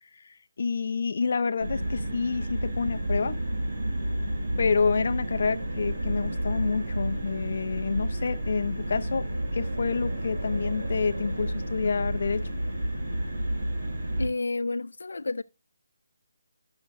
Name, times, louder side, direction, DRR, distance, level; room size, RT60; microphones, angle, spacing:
voice 1, 0.0-3.4 4.6-9.2 9.5-12.5, left 5 dB, 40° left, 0.7 m, -28 dB
sound 1, 1.6-14.3, right 1 dB, 45° right, 2.2 m, -31 dB
voice 2, 14.2-15.4, left 3 dB, 90° left, 0.3 m, -30 dB
12.0 x 6.1 x 2.6 m
hypercardioid pair, 180°, 0 cm